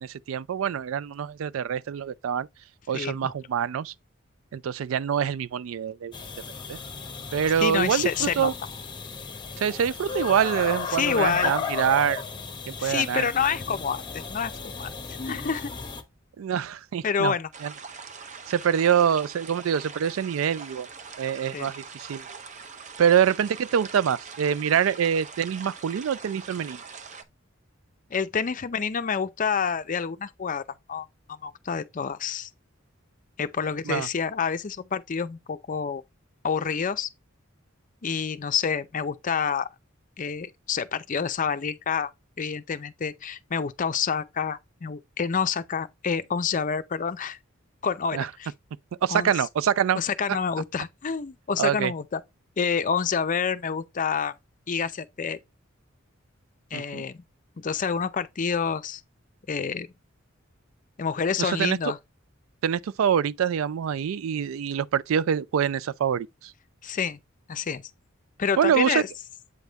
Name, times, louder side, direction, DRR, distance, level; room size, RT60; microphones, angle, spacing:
voice 1, 0.0-2.5 2.9-3.9 4.5-6.1 6.7-6.8 7.3-8.5 9.6-12.2 12.7-13.3 16.4-17.3 17.6-17.7 18.5-20.9 21.2-22.3 23.0-26.8 33.9-34.1 48.1-48.3 49.0-50.0 51.6-51.9 56.7-57.0 61.4-61.8 62.6-66.5 68.6-69.0, right 8 dB, 80° right, 0.3 m, -25 dB
voice 2, 2.9-3.3 7.6-8.5 10.9-11.5 12.8-14.5 14.8-15.7 17.0-17.5 21.5-21.7 28.1-30.6 30.9-32.5 33.4-36.0 36.4-37.1 38.0-39.7 40.2-42.1 42.4-47.4 47.8-48.5 49.1-49.3 50.0-52.2 52.6-54.3 54.7-55.4 56.7-57.2 57.6-59.0 59.5-59.9 61.0-62.0 66.8-67.2 67.5-67.8 68.4-69.1, left 6 dB, 40° left, 0.5 m, -28 dB
sound 1, 6.1-16.0, left 5 dB, 25° left, 0.9 m, -35 dB
sound 2, 17.5-27.2, right 5 dB, 35° right, 0.6 m, -43 dB
8.2 x 3.5 x 3.9 m
head